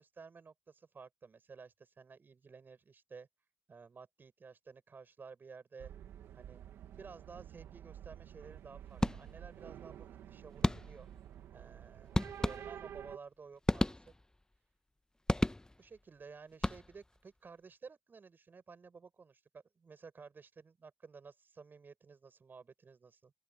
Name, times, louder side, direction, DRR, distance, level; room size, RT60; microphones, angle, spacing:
voice 1, 0.0-3.3 3.7-5.9 6.3-6.6 7.0-11.1 11.5-14.1 15.8-23.3, right 5 dB, 55° right, 7.0 m, -54 dB
sound 1, 5.8-13.2, right 10 dB, 90° right, 1.8 m, -50 dB
sound 2, 9.0-9.6 10.6-11.2 12.1-13.0 13.6-14.4 15.3-16.0 16.5-17.2, left 1 dB, 15° left, 1.0 m, -34 dB
open air
supercardioid pair, 45°, 4 cm